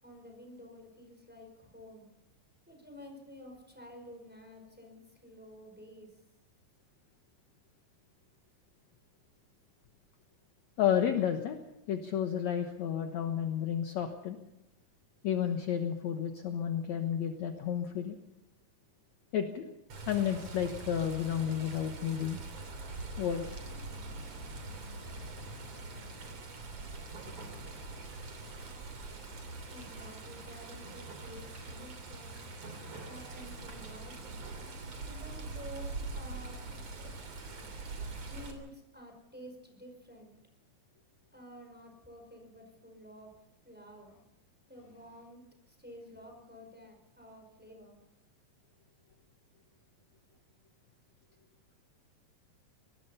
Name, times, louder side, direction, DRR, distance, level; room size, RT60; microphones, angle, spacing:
voice 1, 0.0-2.1 2.7-6.1 29.7-32.4 33.0-34.4 35.0-37.1 38.3-40.3 41.3-43.3 43.6-44.1 44.7-48.0, equal, 5° right, 3 dB, 4.9 m, -51 dB
voice 2, 10.8-11.6 11.9-14.4 15.2-18.2 19.3-19.7 20.1-22.4 23.2-23.6, left 9 dB, 60° left, 5 dB, 2.2 m, -31 dB
Water, 19.9-38.5, right 3 dB, 45° right, 4.0 m, -43 dB
24.0 x 20.0 x 5.7 m, 0.91 s
omnidirectional pair, 4.1 m